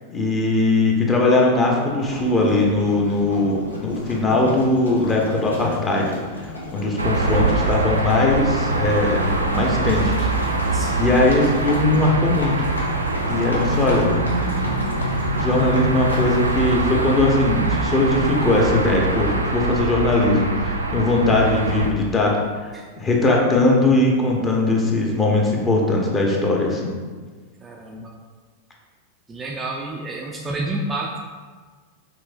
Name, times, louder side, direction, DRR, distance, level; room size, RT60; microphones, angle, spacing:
voice 1, 0.1-6.2 6.7-10.3 10.6-12.6 13.3-14.1 15.3-22.7 23.0-26.9, left 2 dB, 20° left, -1 dB, 0.8 m, -20 dB
Livestock farm animals working animals, 2.0-16.4, left 2 dB, 80° left, 0.7 m, -34 dB
sound 1, 7.0-21.9, right 2 dB, 85° right, 0.4 m, -23 dB
voice 2, 10.7-11.2 22.7-22.9 27.6-28.1 29.3-31.2, right 2 dB, 15° right, -1 dB, 0.4 m, -30 dB
5.9 x 2.7 x 2.5 m, 1.5 s
figure-of-eight pair, 90°, 0 cm